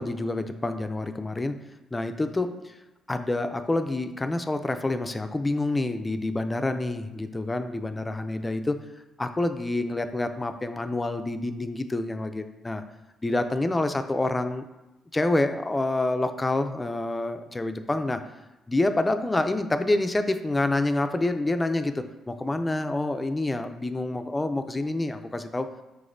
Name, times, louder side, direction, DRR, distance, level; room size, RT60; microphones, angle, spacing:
voice 1, 0.0-1.6 1.9-2.7 3.1-8.8 9.2-12.8 13.2-14.6 15.1-18.2 18.7-25.7, left 2 dB, 20° left, 8 dB, 0.3 m, -27 dB
4.9 x 3.5 x 2.6 m, 1.0 s
cardioid pair, 90°, 0 cm